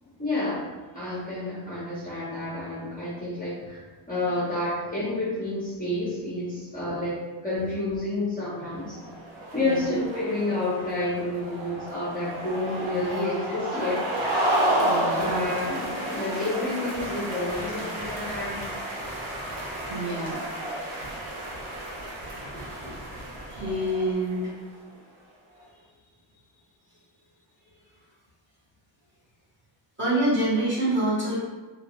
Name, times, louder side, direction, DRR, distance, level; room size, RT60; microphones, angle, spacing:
voice 1, 0.0-0.7 0.9-9.0 9.5-14.1 15.1-18.6 22.5-22.8, left 2 dB, 20° left, -9 dB, 0.7 m, -30 dB
sound 1, 8.8-24.5, right 1 dB, 70° right, 0.7 m, -31 dB
voice 2, 14.8-15.2 19.9-20.4 21.6-21.7 22.8-23.2 23.5-24.5 30.0-31.4, right 1 dB, 25° right, -9 dB, 1.0 m, -27 dB
2.2 x 2.2 x 2.9 m, 1.3 s
wide cardioid pair, 125°, 48 cm